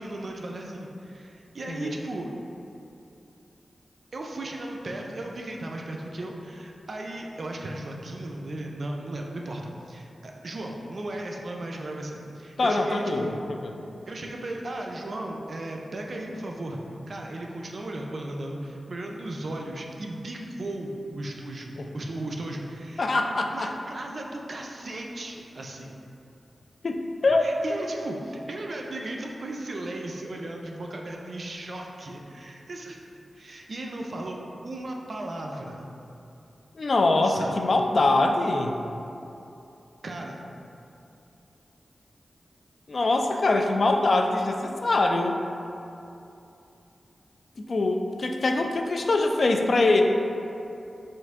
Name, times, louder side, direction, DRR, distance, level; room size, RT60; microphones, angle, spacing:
voice 1, 0.0-2.3 4.1-13.5 14.1-16.8 17.1-23.1 23.5-25.9 27.4-33.0 33.3-34.4 34.6-35.9 37.2-37.5 40.0-40.4, right 1 dB, 60° right, 1 dB, 0.4 m, -36 dB
voice 2, 1.7-2.0 12.6-13.7 21.8-21.9 23.0-23.7 26.8-27.5 36.7-38.8 42.9-45.4 47.6-50.0, left 2 dB, 60° left, 4 dB, 0.3 m, -23 dB
4.5 x 2.5 x 3.5 m, 2.7 s
cardioid pair, 65°, 0 cm